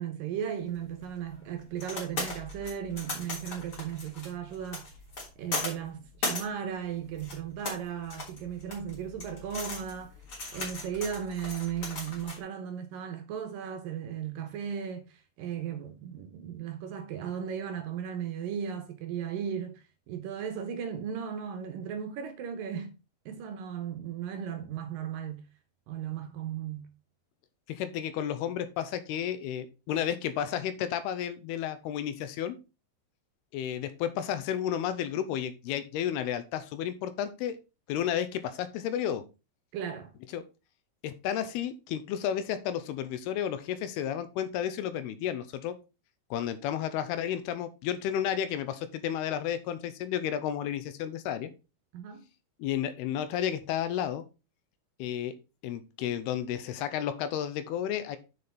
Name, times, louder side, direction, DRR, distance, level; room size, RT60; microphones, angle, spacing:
voice 1, 0.0-4.9 5.4-10.1 10.5-22.9 23.3-25.5 25.9-26.9 39.7-40.1 51.9-52.2, right 8 dB, 75° right, 2.3 m, -36 dB
sound 1, 0.7-12.4, left 2 dB, 35° left, 3.7 m, -38 dB
voice 2, 27.7-32.6 33.5-37.6 37.9-39.2 40.3-40.4 41.0-45.8 46.3-51.5 52.6-54.2 55.0-55.3 55.6-58.2, left 10 dB, 85° left, 2.8 m, -32 dB
7.0 x 6.7 x 4.3 m
omnidirectional pair, 4.6 m